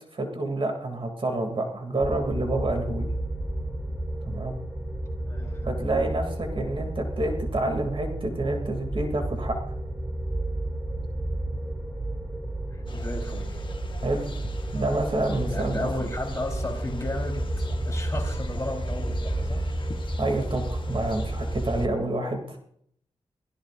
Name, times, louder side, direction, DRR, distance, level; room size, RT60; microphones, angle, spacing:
voice 1, 0.1-3.1 4.2-4.6 5.6-9.6 14.0-14.2 14.7-16.1 20.2-22.6, right 2 dB, 50° right, 3 dB, 2.7 m, -28 dB
sound 1, 2.0-21.9, right 1 dB, 10° right, 2.5 m, -31 dB
voice 2, 5.2-5.7 12.7-13.7 15.5-19.6, left 2 dB, 30° left, 0 dB, 3.9 m, -34 dB
sound 2, 12.9-21.9, left 3 dB, 45° left, 1.1 m, -43 dB
25.5 x 16.5 x 2.6 m, 0.68 s
wide cardioid pair, 90°, 11 cm